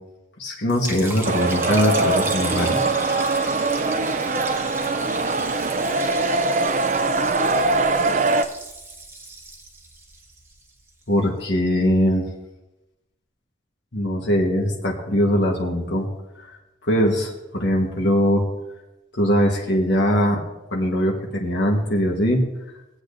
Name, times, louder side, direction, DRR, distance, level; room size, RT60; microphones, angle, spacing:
voice 1, 0.4-3.0 11.1-12.2 13.9-16.1 16.4-16.6 16.9-18.4 19.1-20.4 20.7-22.4, equal, 70° left, -1 dB, 1.4 m, -21 dB
Liquid, 0.7-10.9, right 2 dB, 15° right, 1.1 m, -35 dB
sound 1, 1.2-8.4, right 3 dB, 40° right, 0.5 m, -22 dB
20.0 x 8.5 x 2.7 m, 0.98 s
head